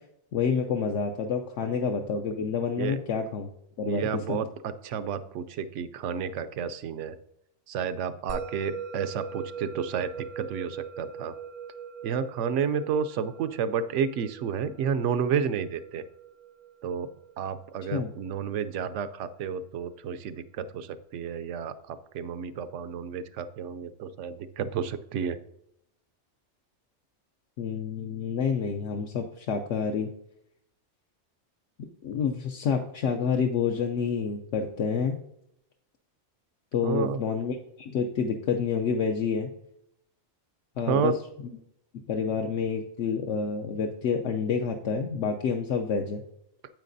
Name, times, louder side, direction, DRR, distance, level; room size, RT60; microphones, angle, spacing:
voice 1, 0.3-3.5 3.8-4.4 17.9-18.1 27.6-30.1 32.0-35.2 36.7-39.5 40.8-41.1 42.1-46.2, left 6 dB, 75° left, 3 dB, 1.0 m, -28 dB
voice 2, 3.9-7.2 7.7-10.1 10.4-11.3 12.0-16.0 16.8-17.1 17.4-25.4 36.8-37.2 40.9-41.1, right 7 dB, 80° right, 12 dB, 0.9 m, -31 dB
Musical instrument, 8.3-18.9, right 6 dB, 55° right, 0.5 m, -41 dB
9.1 x 8.2 x 2.6 m, 0.76 s
omnidirectional pair, 1.3 m